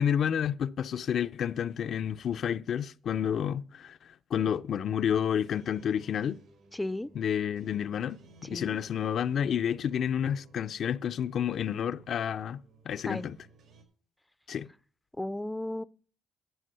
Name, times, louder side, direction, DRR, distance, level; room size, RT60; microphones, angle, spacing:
voice 1, 0.0-4.0 4.3-6.4 7.2-13.4 14.5-14.7, left 8 dB, 65° left, 0.5 m, -30 dB
sound 1, 5.3-13.8, right 2 dB, 75° right, 4.6 m, -58 dB
voice 2, 6.7-7.1 8.5-8.8 13.0-13.3 15.2-15.8, left 1 dB, 10° left, 0.5 m, -34 dB
11.0 x 7.8 x 6.8 m
cardioid pair, 90°, 0 cm